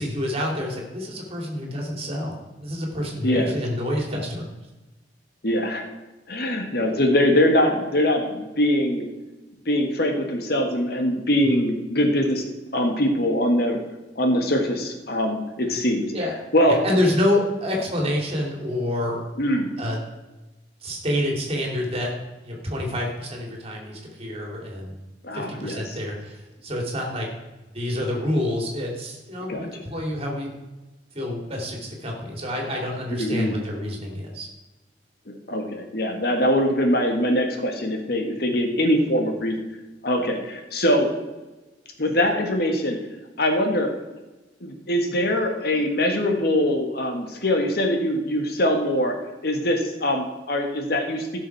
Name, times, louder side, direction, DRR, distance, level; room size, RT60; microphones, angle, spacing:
voice 1, 0.0-4.5 11.4-11.6 15.7-15.8 16.1-16.3 16.7-19.2 19.8-20.0 20.8-22.1 22.4-25.0 25.3-27.3 27.7-30.5 31.1-34.5, left 1 dB, 35° right, 0 dB, 2.8 m, -27 dB
voice 2, 5.4-5.8 6.3-9.1 9.6-12.4 12.7-13.8 14.1-16.1 16.5-16.8 19.4-19.7 25.2-25.8 29.5-29.7 33.1-33.6 35.3-39.6 40.0-41.1 42.0-43.0 43.4-43.9 44.6-49.1 49.4-51.4, left 1 dB, 60° left, 4 dB, 1.7 m, -22 dB
16.0 x 6.4 x 4.7 m, 1.1 s
head